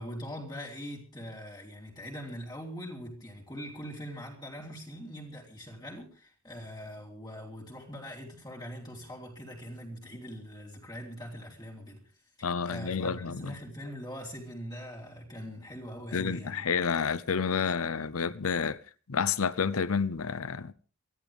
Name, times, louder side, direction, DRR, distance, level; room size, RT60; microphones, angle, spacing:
voice 1, 0.0-12.0 12.6-16.7, equal, 20° left, 3.7 m, -42 dB
voice 2, 12.4-13.5 16.1-18.8 19.1-20.7, left 6 dB, 85° left, 0.7 m, -29 dB
24.0 x 14.5 x 3.5 m
head